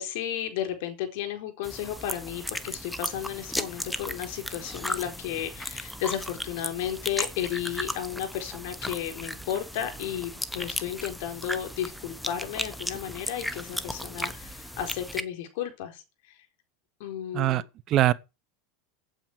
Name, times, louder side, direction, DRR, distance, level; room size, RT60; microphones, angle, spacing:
voice 1, 0.0-16.4 17.0-17.6, left 10 dB, 65° left, 4.2 m, -33 dB
sound 1, 1.6-15.2, left 1 dB, ahead, 1.0 m, -36 dB
voice 2, 17.3-18.1, right 14 dB, 40° right, 0.8 m, -23 dB
9.0 x 8.7 x 8.1 m
supercardioid pair, 145°, 0 cm